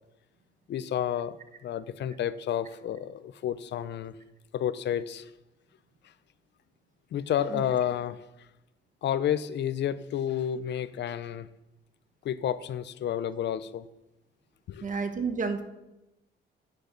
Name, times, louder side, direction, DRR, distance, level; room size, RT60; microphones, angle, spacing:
voice 1, 0.7-1.4 1.6-4.1 4.5-5.2 7.1-8.2 9.0-11.5 12.2-13.9 14.7-14.9, left 10 dB, 65° left, 15 dB, 0.6 m, -30 dB
voice 2, 14.8-15.6, right 4 dB, 40° right, 7 dB, 1.4 m, -30 dB
11.0 x 9.3 x 3.9 m, 0.92 s
cardioid pair, 90°, 20 cm